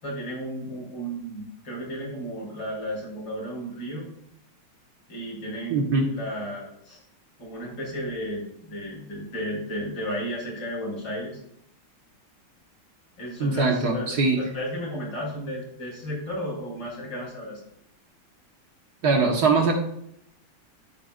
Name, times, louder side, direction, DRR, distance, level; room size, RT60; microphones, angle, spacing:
voice 1, 0.0-4.1 5.1-7.0 7.4-11.4 13.2-17.6, equal, 90° left, -4 dB, 5.3 m, -33 dB
voice 2, 5.7-6.1 13.4-14.4 19.0-19.7, right 3 dB, 50° right, 2 dB, 1.8 m, -21 dB
11.5 x 9.7 x 2.6 m, 0.71 s
omnidirectional pair, 2.3 m